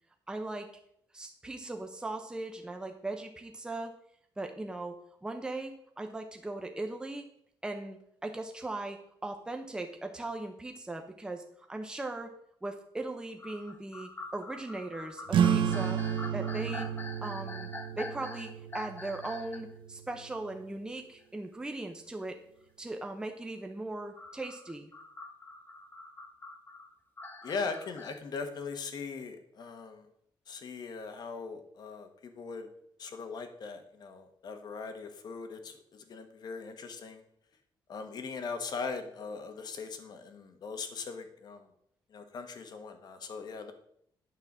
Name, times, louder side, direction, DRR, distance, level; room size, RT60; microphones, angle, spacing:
voice 1, 0.3-0.7 1.1-3.9 4.4-4.9 5.2-7.3 7.6-12.3 12.6-16.0 16.3-16.9 17.2-17.7 18.0-22.4 22.8-24.9, right 2 dB, 10° right, 4 dB, 0.8 m, -39 dB
sound 1, 13.4-19.7 20.2-20.3 21.7-21.8 24.2-28.2, left 3 dB, 25° left, 1.0 m, -45 dB
sound 2, 15.3-20.4, right 8 dB, 70° right, 0.8 m, -32 dB
voice 2, 27.4-30.0 30.5-32.7 33.0-35.7 36.1-37.2 37.9-41.6 42.1-43.7, left 4 dB, 50° left, 7 dB, 1.3 m, -40 dB
9.1 x 4.0 x 7.2 m, 0.70 s
cardioid pair, 125°, 9 cm